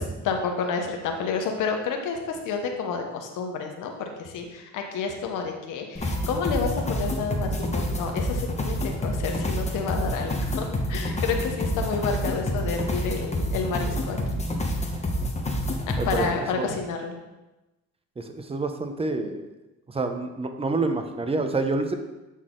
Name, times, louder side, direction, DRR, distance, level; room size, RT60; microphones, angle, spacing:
voice 1, 0.0-14.4 16.0-17.2, left 5 dB, 85° left, 4 dB, 1.0 m, -30 dB
sound 1, 6.0-16.3, left 1 dB, 20° left, 1.1 m, -28 dB
voice 2, 16.0-16.8 18.2-19.5 19.9-21.9, right 3 dB, 20° right, 6 dB, 0.8 m, -28 dB
8.3 x 4.1 x 3.8 m, 1.0 s
cardioid pair, 90°, 30 cm